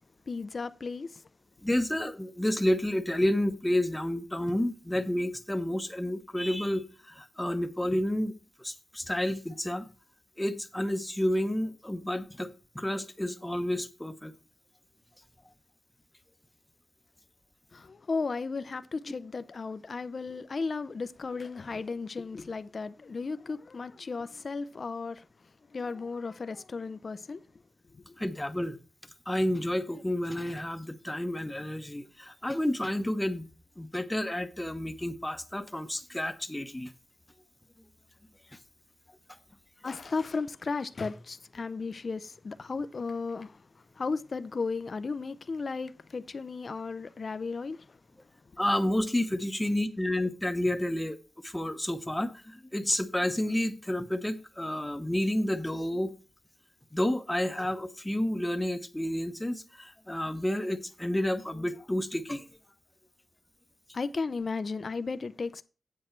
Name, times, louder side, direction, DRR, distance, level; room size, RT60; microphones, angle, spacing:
voice 1, 0.3-1.2 17.7-25.2 25.7-27.4 27.9-28.2 39.8-48.0 63.9-65.6, left 4 dB, 50° left, 0.5 m, -35 dB
voice 2, 1.6-8.3 8.6-9.9 10.4-14.3 28.2-28.8 29.3-33.5 33.8-36.9 48.6-51.2 51.4-56.1 56.9-62.4, left 1 dB, 10° left, 0.8 m, -30 dB
8.0 x 7.6 x 4.4 m
wide cardioid pair, 100°, 0 cm